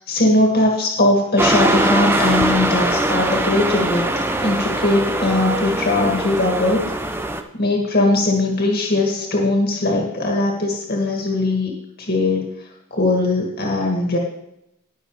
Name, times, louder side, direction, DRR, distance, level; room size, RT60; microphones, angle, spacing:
voice 1, 0.1-4.0 4.4-6.8 7.5-11.7 12.0-12.5 12.9-14.2, left 2 dB, 45° left, -1 dB, 2.0 m, -19 dB
old sony tbc, 1.4-7.4, right 1 dB, 10° right, 0.6 m, -21 dB
18.5 x 6.4 x 3.3 m, 0.80 s
head